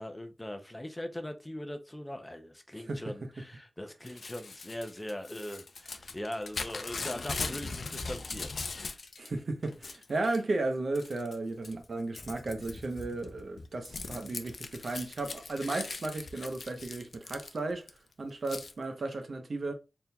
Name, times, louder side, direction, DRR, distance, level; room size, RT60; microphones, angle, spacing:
voice 1, 0.0-8.6, left 1 dB, 15° left, 0.6 m, -40 dB
voice 2, 2.7-3.1 9.2-17.9 18.2-19.7, right 2 dB, 65° right, 0.7 m, -34 dB
Crumpling crinkling / Tearing, 4.1-9.3 9.6-10.4 10.9-11.4 11.6-17.9 18.5-18.7, left 3 dB, 75° left, 0.5 m, -40 dB
4.2 x 3.6 x 2.2 m
wide cardioid pair, 100°, 0 cm